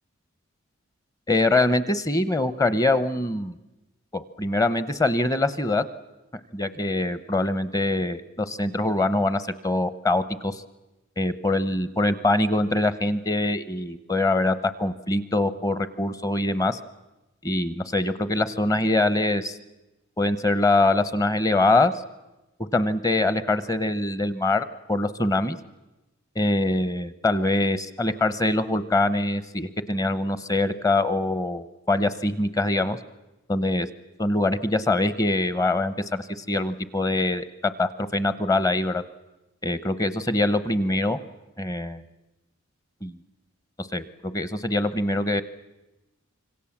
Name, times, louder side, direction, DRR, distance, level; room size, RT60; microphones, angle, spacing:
voice 1, 1.3-3.5 4.1-5.8 6.5-10.6 11.2-16.8 17.4-19.6 20.2-21.9 22.6-25.6 26.4-33.0 33.5-33.9 34.2-39.0 39.6-41.2 41.6-42.0 43.0-43.2 43.8-45.4, left 2 dB, 15° left, 13 dB, 0.8 m, -24 dB
26.0 x 24.0 x 7.2 m, 1.0 s
head